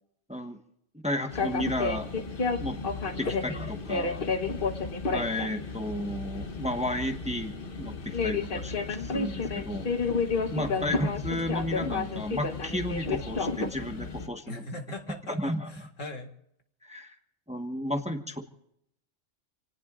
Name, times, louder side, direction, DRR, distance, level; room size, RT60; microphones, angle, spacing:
voice 1, 1.0-2.1 2.5-2.8 3.2-4.3 5.1-9.9 10.5-14.6 15.3-15.8 16.8-17.1 17.5-18.4, left 1 dB, 5° right, 5 dB, 1.2 m, -33 dB
sound 1, 1.3-14.3, left 4 dB, 50° left, 1.3 m, -31 dB
voice 2, 14.5-16.3, left 1 dB, 85° left, 5 dB, 2.3 m, -40 dB
28.0 x 18.5 x 2.5 m, 0.75 s
omnidirectional pair, 1.3 m